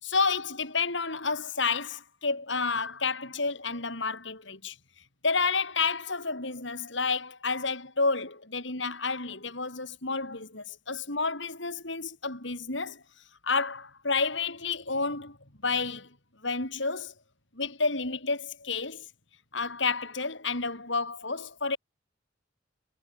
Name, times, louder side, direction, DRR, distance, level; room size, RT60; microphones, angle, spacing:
voice 1, 0.0-4.7 5.2-13.0 13.4-15.4 15.6-16.1 16.4-17.1 17.5-19.1 19.5-21.8, left 4 dB, 65° left, 5.0 m, -30 dB
head